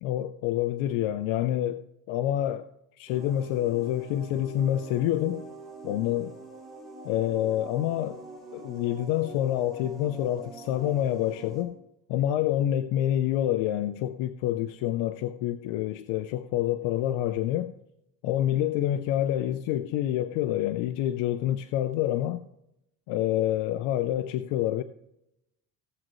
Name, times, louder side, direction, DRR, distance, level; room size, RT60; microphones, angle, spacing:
voice 1, 0.0-2.7 3.0-5.4 5.8-6.3 7.0-8.2 8.5-11.7 12.1-17.7 18.2-22.4 23.1-24.8, left 12 dB, 85° left, 0.7 m, -27 dB
sound 1, 3.1-11.6, right 3 dB, ahead, 4.0 m, -44 dB
17.0 x 7.5 x 3.1 m
cardioid pair, 100°, 45 cm